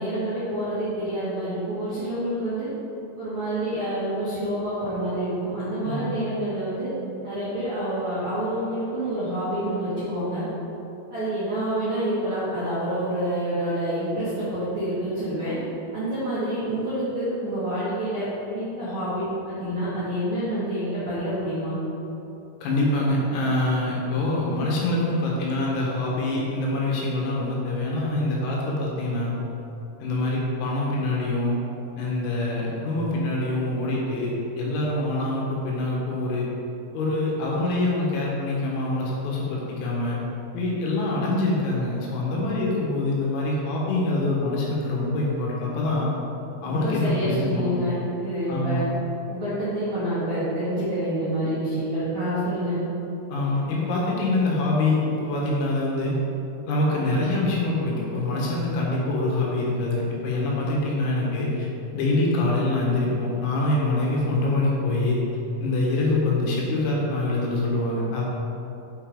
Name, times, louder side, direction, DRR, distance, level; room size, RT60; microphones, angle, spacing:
voice 1, 0.0-2.7 3.2-6.9 7.2-10.4 11.1-15.5 15.9-21.8 46.6-48.8 49.3-52.8, right 1 dB, 85° right, -12 dB, 1.1 m, -27 dB
voice 2, 22.6-29.3 30.0-31.6 32.0-36.5 36.9-40.2 40.5-46.1 46.6-47.7 48.5-48.8 53.3-56.2 56.7-61.7 61.9-65.2 65.6-68.2, left 2 dB, 80° left, -4 dB, 4.1 m, -25 dB
7.9 x 5.7 x 5.2 m, 3.0 s
omnidirectional pair, 6.0 m